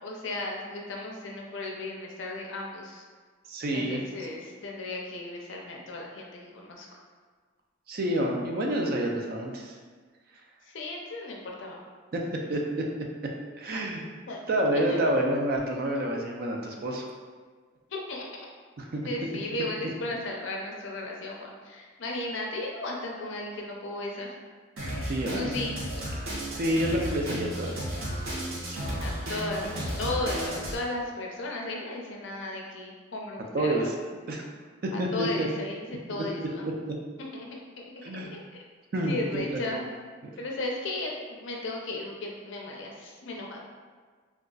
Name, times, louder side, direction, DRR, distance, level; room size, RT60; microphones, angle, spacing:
voice 1, 0.0-3.0 3.7-7.0 10.6-11.8 13.7-13.8 14.3-14.4 14.9-15.0 17.9-18.5 19.0-24.3 25.4-25.7 29.0-33.9 34.9-36.7 37.2-38.6 39.1-39.8 40.4-43.6, left 2 dB, 65° left, -1 dB, 0.5 m, -35 dB
voice 2, 3.5-4.0 7.9-9.8 12.1-12.2 12.5-12.9 13.6-14.0 14.5-17.0 18.8-19.1 25.0-25.5 26.5-27.7 28.7-28.8 33.5-33.8 34.3-34.4 34.8-35.5 36.1-36.2 38.0-38.3 38.9-39.7, right 1 dB, 50° right, 1 dB, 0.4 m, -28 dB
Drum kit, 24.8-30.8, equal, 85° right, 0.7 m, -33 dB
3.8 x 2.3 x 2.3 m, 1.5 s
head